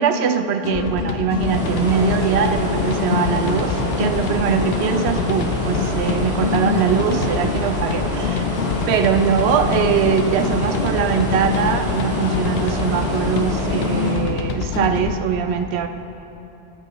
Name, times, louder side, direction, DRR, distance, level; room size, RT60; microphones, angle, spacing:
voice 1, 0.0-8.5 8.9-15.9, right 7 dB, 90° right, 8 dB, 0.8 m, -21 dB
sound 1, 0.6-15.2, left 6 dB, 75° left, 0.8 m, -25 dB
sound 2, 1.3-14.3, equal, 5° right, 1.9 m, -26 dB
12.0 x 8.5 x 3.0 m, 3.0 s
omnidirectional pair, 1.1 m